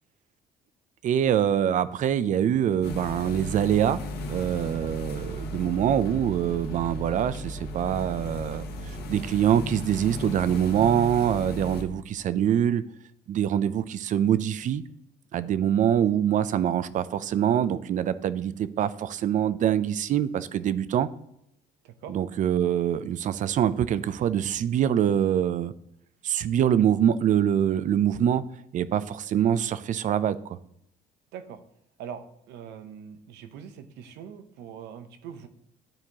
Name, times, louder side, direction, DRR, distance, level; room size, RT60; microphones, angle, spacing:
voice 1, 1.0-4.0 4.3-12.8 13.3-14.8 15.3-21.1 22.1-25.7 26.2-28.4 28.7-30.4, right 10 dB, 50° right, 15 dB, 0.4 m, -24 dB
sound 1, 2.8-11.8, left 1 dB, 70° left, 1.1 m, -36 dB
voice 2, 32.5-35.5, right 8 dB, 90° right, 10 dB, 0.8 m, -42 dB
11.5 x 4.5 x 2.8 m, 0.75 s
cardioid pair, 110°, 17 cm